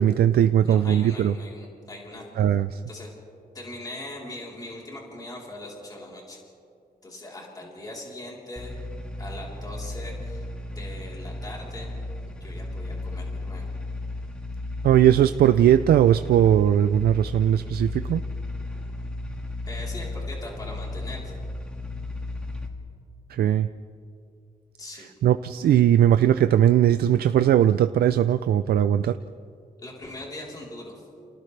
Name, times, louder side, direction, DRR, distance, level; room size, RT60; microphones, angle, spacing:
voice 1, 0.0-1.3 2.4-2.8 14.8-18.2 23.3-23.7 25.2-29.2, right 10 dB, 85° right, 11 dB, 0.5 m, -19 dB
voice 2, 0.6-2.5 2.9-3.1 3.5-6.4 7.0-8.7 9.2-11.9 12.4-13.7 19.7-21.4 24.8-25.1 29.8-30.9, left 1 dB, 25° left, -3 dB, 3.7 m, -40 dB
sound 1, 8.6-22.7, left 2 dB, 5° left, 1.7 m, -34 dB
30.0 x 28.0 x 3.3 m, 2.5 s
wide cardioid pair, 170°, 16 cm